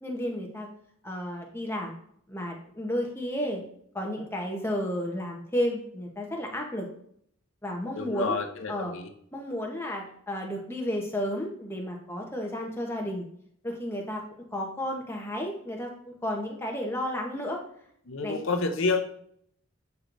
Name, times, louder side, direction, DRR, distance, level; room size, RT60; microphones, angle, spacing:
voice 1, 0.0-0.7 1.0-1.9 2.3-3.6 3.9-6.9 7.6-8.4 8.7-8.9 9.3-13.3 13.6-14.2 14.5-17.6 18.2-18.4, equal, 10° left, 1 dB, 0.8 m, -32 dB
voice 2, 8.0-9.1 18.1-19.0, left 4 dB, 60° left, 7 dB, 0.6 m, -29 dB
8.3 x 4.6 x 2.6 m, 0.68 s
head